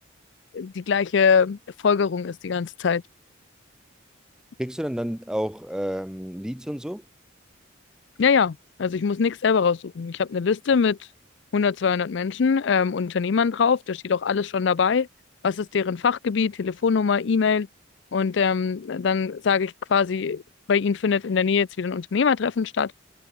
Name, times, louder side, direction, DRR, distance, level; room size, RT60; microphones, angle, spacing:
voice 1, 0.5-1.6 1.8-3.0 8.2-11.0 11.5-15.1 15.4-17.7 18.1-20.4 20.7-22.9, left 6 dB, 60° left, 0.4 m, -23 dB
voice 2, 4.6-7.0, equal, 5° right, 0.5 m, -30 dB
head